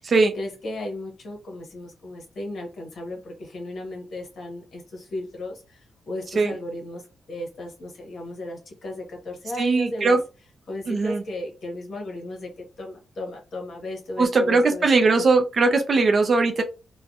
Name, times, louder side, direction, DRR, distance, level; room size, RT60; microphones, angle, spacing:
voice 1, 0.3-10.2 10.7-15.3, left 1 dB, 50° left, 1.1 m, -35 dB
voice 2, 9.6-10.2 10.9-11.2 14.2-16.6, right 3 dB, 40° right, 0.5 m, -20 dB
3.4 x 2.2 x 2.4 m
wide cardioid pair, 150°, 0 cm